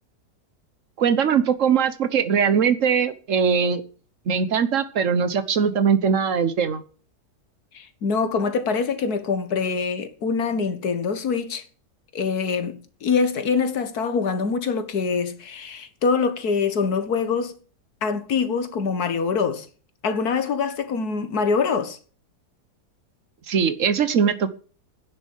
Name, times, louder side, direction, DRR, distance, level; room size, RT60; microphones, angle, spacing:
voice 1, 1.0-3.8 4.3-6.8 23.5-24.5, right 6 dB, 55° right, 1.3 m, -21 dB
voice 2, 7.7-11.6 12.1-17.5 18.0-19.7 20.0-22.0, left 5 dB, 70° left, 1.9 m, -24 dB
10.0 x 7.7 x 9.2 m
omnidirectional pair, 1.7 m